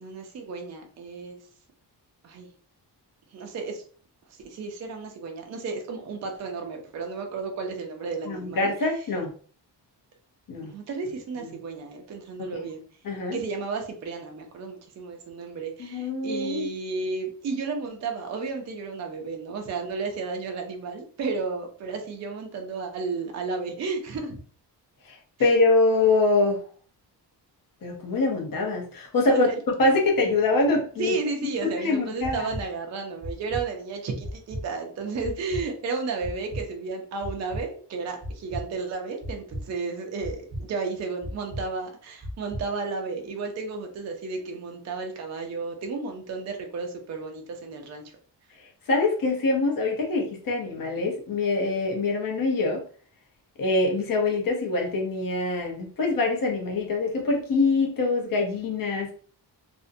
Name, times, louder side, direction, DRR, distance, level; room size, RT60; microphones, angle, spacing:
voice 1, 0.0-1.4 2.2-2.5 3.3-3.8 4.3-8.7 10.6-12.8 13.3-24.4 29.3-29.6 31.0-48.0, right 4 dB, 40° right, 3 dB, 0.4 m, -33 dB
voice 2, 8.3-9.3 10.5-10.7 11.4-11.5 12.4-12.5 13.0-13.4 15.8-16.7 25.0-26.6 27.8-29.5 29.8-31.2 31.6-32.5 48.9-52.8 53.6-59.1, left 3 dB, 55° left, 1 dB, 0.7 m, -24 dB
sound 1, 32.2-32.6 33.2-33.6 34.2-34.6 35.2-35.6 36.2-36.6 37.2-37.6 38.2-38.6 39.2-39.6 40.2-40.6 41.2-41.6 42.2-42.6, equal, 10° left, 0.9 m, -34 dB
2.5 x 2.1 x 2.5 m, 0.44 s
wide cardioid pair, 160°, 42 cm